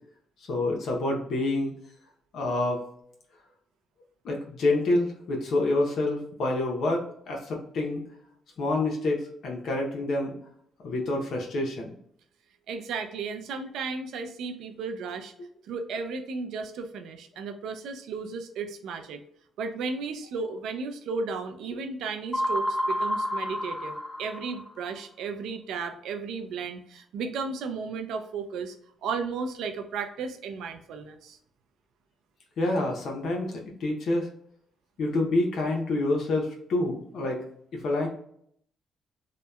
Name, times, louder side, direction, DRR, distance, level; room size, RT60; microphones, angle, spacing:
voice 1, 0.5-1.7 2.3-2.9 4.2-8.0 8.6-10.3 10.8-11.9 32.6-34.3 35.0-37.4 37.7-38.1, left 2 dB, 70° left, -1 dB, 0.7 m, -27 dB
voice 2, 12.7-15.3 15.7-19.2 19.6-23.9 24.2-28.7 29.0-31.4, right 4 dB, 80° right, 6 dB, 0.4 m, -34 dB
sound 1, 22.3-24.9, equal, 20° left, 0.4 m, -29 dB
2.8 x 2.1 x 2.2 m, 0.67 s
cardioid pair, 90°, 0 cm